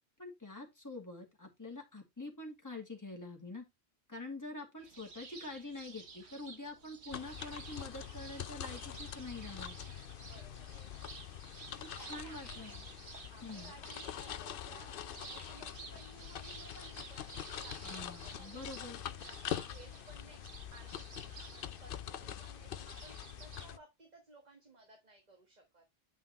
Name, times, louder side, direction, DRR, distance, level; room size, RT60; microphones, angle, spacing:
voice 1, 0.2-3.6 4.1-9.8 11.8-12.8 13.4-13.7 17.8-19.0, left 2 dB, 15° left, 2.2 m, -46 dB
sound 1, 4.8-23.7, right 4 dB, 75° right, 1.6 m, -53 dB
sound 2, 7.1-23.8, left 10 dB, 60° left, 0.7 m, -45 dB
voice 2, 10.2-10.9 12.0-12.8 13.3-25.8, right 2 dB, 40° right, 1.5 m, -59 dB
8.8 x 5.6 x 3.0 m
omnidirectional pair, 1.1 m